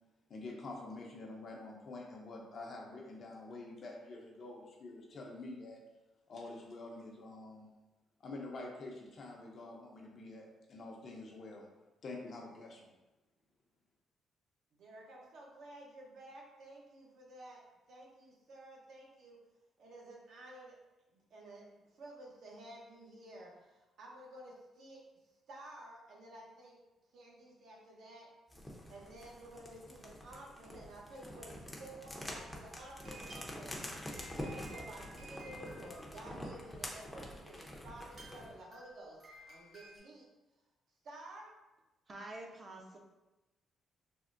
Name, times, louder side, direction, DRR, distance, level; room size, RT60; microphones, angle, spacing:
voice 1, 0.3-5.8 6.3-7.7 8.2-11.7 12.0-12.9, left 2 dB, 55° left, -1 dB, 0.6 m, -47 dB
voice 2, 14.7-17.6 17.9-19.4 19.8-20.8 21.1-21.6 21.9-25.0 25.5-26.8 27.1-28.3 28.9-39.2 39.5-40.3 41.0-41.5, right 1 dB, 70° right, -2 dB, 0.7 m, -52 dB
sound 1, 28.5-38.5, left 1 dB, 10° left, 0.5 m, -46 dB
sound 2, 32.8-37.0 37.7-37.8 38.0-40.0, right 1 dB, 55° right, 1.1 m, -55 dB
voice 3, 42.1-43.0, right 2 dB, 35° right, 1 dB, 0.5 m, -47 dB
3.5 x 2.1 x 2.5 m, 1.0 s
cardioid pair, 90°, 0 cm